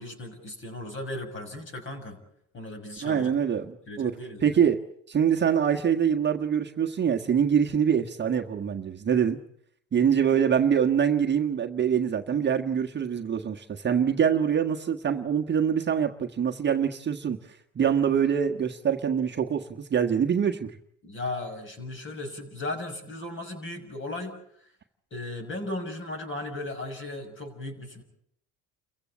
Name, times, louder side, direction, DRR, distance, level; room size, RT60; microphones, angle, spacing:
voice 1, 0.0-2.2 2.5-3.6 3.9-4.6 21.0-24.7 25.1-28.0, left 2 dB, 35° left, 6 dB, 6.9 m, -36 dB
voice 2, 3.0-4.1 4.4-4.8 5.1-9.4 9.9-17.4 17.7-20.7, right 8 dB, 30° right, 2 dB, 1.5 m, -24 dB
29.5 x 15.5 x 8.6 m, 0.70 s
supercardioid pair, 105°, 36 cm